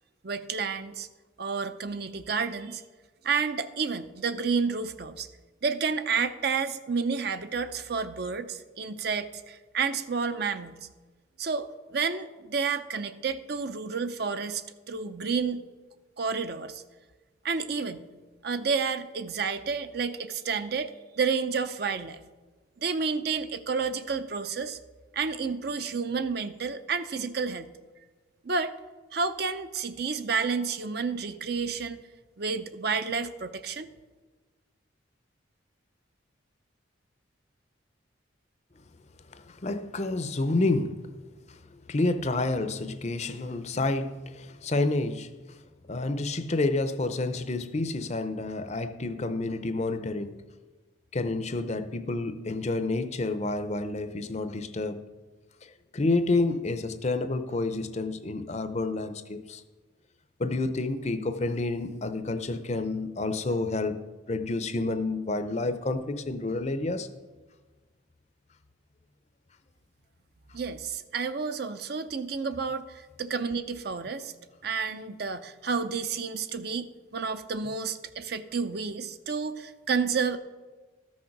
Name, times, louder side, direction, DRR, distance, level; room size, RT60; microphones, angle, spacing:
voice 1, 0.2-1.1 1.4-2.8 3.2-5.3 5.6-10.9 11.4-15.6 16.2-16.8 17.4-22.2 22.8-24.8 25.1-27.7 28.4-28.7 29.1-32.0 32.4-33.9 70.5-74.3 74.6-80.4, right 5 dB, 55° right, 0.6 m, -30 dB
voice 2, 39.3-41.0 41.5-41.6 41.9-45.3 45.9-50.4 51.1-55.0 55.9-59.6 60.4-64.0 64.3-67.1, left 2 dB, 35° left, 0.6 m, -29 dB
13.5 x 6.4 x 5.9 m
head